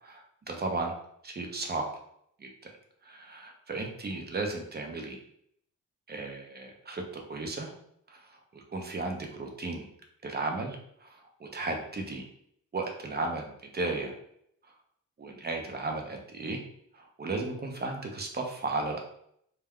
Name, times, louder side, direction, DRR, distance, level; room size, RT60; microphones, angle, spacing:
voice 1, 0.0-0.9 1.2-1.8 2.4-2.7 3.0-5.2 6.1-7.7 8.1-9.9 10.2-12.2 12.7-14.1 14.6-14.7 15.2-16.6 16.9-19.0, right 3 dB, 30° right, 2 dB, 0.5 m, -35 dB
2.3 x 2.2 x 3.5 m, 0.69 s
cardioid pair, 105°, 32 cm